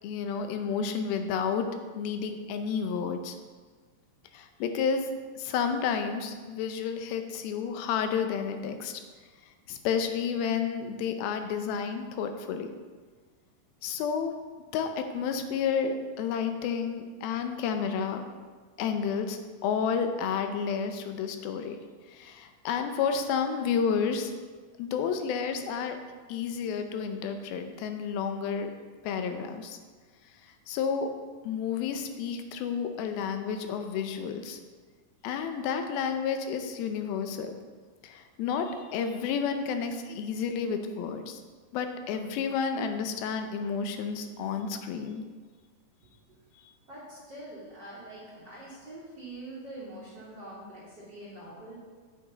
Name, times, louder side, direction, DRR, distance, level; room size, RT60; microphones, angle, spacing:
voice 1, 0.0-1.7 2.0-3.4 4.3-5.1 5.4-9.0 9.4-12.7 13.8-14.3 14.7-18.2 18.8-21.8 22.1-24.3 24.8-26.0 26.3-28.7 29.0-29.8 30.4-31.1 31.4-34.6 35.2-37.5 38.0-41.4 41.7-45.2, left 6 dB, 90° left, 7 dB, 2.6 m, -31 dB
voice 2, 46.9-51.8, right 1 dB, 35° right, -8 dB, 1.9 m, -44 dB
8.3 x 7.7 x 4.0 m, 1.5 s
omnidirectional pair, 4.2 m